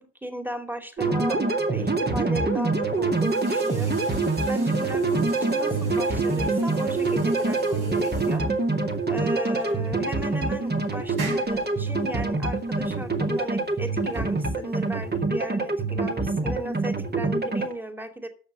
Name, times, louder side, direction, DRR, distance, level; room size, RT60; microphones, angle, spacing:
voice 1, 0.0-1.4 1.7-4.0 4.5-8.4 9.1-18.3, right 1 dB, 5° right, 7 dB, 2.5 m, -36 dB
sound 1, 1.0-17.7, right 3 dB, 30° right, 2.2 m, -25 dB
sound 2, 2.8-15.2, right 1 dB, 80° right, 6.4 m, -43 dB
9.5 x 6.7 x 8.3 m, 0.43 s
hypercardioid pair, 55°, 33 cm